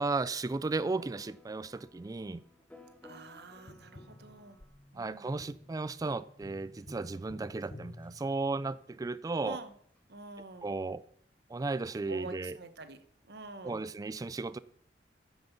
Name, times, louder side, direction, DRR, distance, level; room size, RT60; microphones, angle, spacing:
voice 1, 0.0-2.4 5.0-9.6 10.6-11.0 11.5-12.5 13.6-14.6, right 3 dB, 20° right, 0.3 m, -34 dB
sound 1, 0.9-4.8 5.8-6.2 6.8-6.9 7.2-7.3 7.6-7.7 8.0-8.2 10.0-10.1, left 2 dB, 10° left, 1.3 m, -58 dB
voice 2, 3.0-4.6 4.9-5.3 9.4-9.7 10.1-10.7 12.1-13.9, right 3 dB, 65° right, 1.3 m, -47 dB
Tap, 3.7-9.0 11.6-11.7, left 1 dB, 35° left, 1.0 m, -52 dB
9.5 x 7.9 x 6.9 m
head